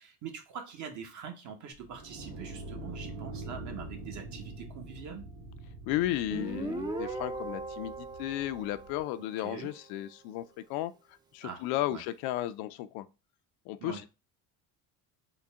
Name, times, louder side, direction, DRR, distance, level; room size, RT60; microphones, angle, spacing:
voice 1, 0.0-5.2 9.4-9.7 11.4-12.0 13.8-14.0, right 7 dB, 50° right, 1.0 m, -44 dB
sound 1, 1.7-9.0, right 2 dB, 85° right, 1.2 m, -45 dB
voice 2, 5.9-10.9 11.3-13.1 13.7-14.1, left 14 dB, 75° left, 0.5 m, -34 dB
Guitar, 6.3-9.8, right 2 dB, 10° right, 0.4 m, -39 dB
3.9 x 2.1 x 3.5 m
cardioid pair, 120°, 37 cm